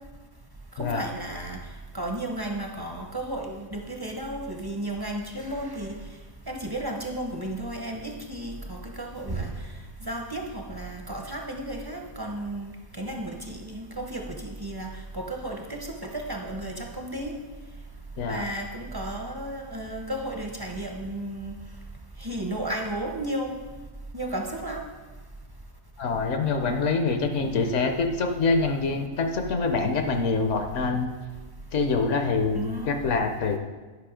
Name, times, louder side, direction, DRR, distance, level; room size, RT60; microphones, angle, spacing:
voice 1, 0.8-1.6 1.9-6.0 6.5-9.5 10.0-17.3 18.3-21.6 22.2-23.6 24.1-24.8 27.4-27.7 32.5-33.0, right 1 dB, 25° right, 2 dB, 0.5 m, -33 dB
voice 2, 26.0-31.1 31.7-33.6, left 4 dB, 65° left, 6 dB, 1.0 m, -25 dB
9.9 x 5.5 x 5.0 m, 1.3 s
omnidirectional pair, 1.5 m